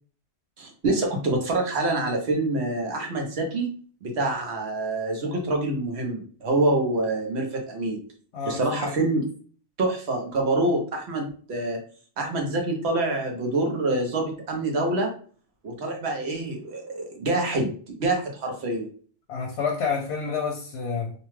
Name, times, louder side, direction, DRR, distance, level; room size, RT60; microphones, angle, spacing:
voice 1, 0.6-3.7 4.0-8.0 8.5-9.3 9.8-11.8 12.2-15.1 15.6-18.9, right 2 dB, 70° right, 2 dB, 1.0 m, -26 dB
voice 2, 8.3-8.9 19.3-21.1, left 5 dB, 65° left, 0 dB, 0.8 m, -29 dB
2.8 x 2.2 x 3.0 m, 0.43 s
omnidirectional pair, 1.2 m